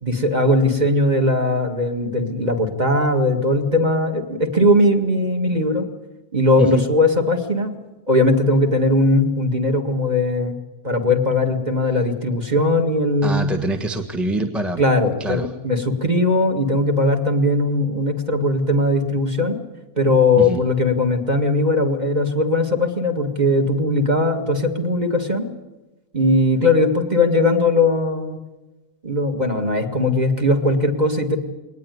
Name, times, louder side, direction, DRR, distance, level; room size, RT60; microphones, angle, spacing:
voice 1, 0.0-5.9 6.3-7.7 8.1-10.5 10.8-13.5 14.8-19.6 20.0-25.5 26.1-28.4 29.0-31.4, left 1 dB, 25° right, 4 dB, 2.2 m, -19 dB
voice 2, 13.2-14.8 15.2-15.5 20.4-20.6, right 2 dB, ahead, 4 dB, 1.2 m, -24 dB
21.5 x 19.0 x 9.5 m, 1.1 s
omnidirectional pair, 1.6 m